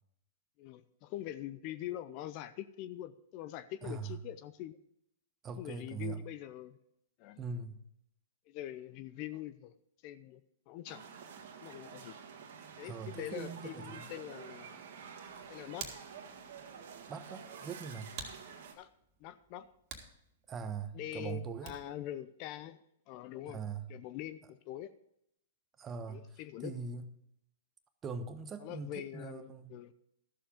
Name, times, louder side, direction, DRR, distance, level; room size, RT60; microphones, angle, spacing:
voice 1, 0.6-4.8 5.6-6.8 7.2-7.4 8.5-9.7 10.0-10.4 10.7-11.0 11.6-12.2 12.8-14.8 15.5-15.9 18.8-18.9 19.2-19.7 20.9-22.8 23.1-23.6 23.9-24.9 26.1-26.7 28.6-29.9, left 13 dB, 45° left, 14 dB, 0.6 m, -44 dB
voice 2, 3.8-4.1 5.4-6.2 7.4-7.8 12.8-14.1 17.1-18.1 20.5-21.8 23.5-23.9 25.8-27.1 28.0-29.8, right 5 dB, 25° right, 9 dB, 1.1 m, -41 dB
sound 1, 10.9-18.7, right 6 dB, 65° right, 1.6 m, -49 dB
Hands, 15.2-22.1, right 6 dB, 45° right, 2.1 m, -51 dB
13.0 x 7.2 x 5.2 m, 0.75 s
hypercardioid pair, 120°, 0 cm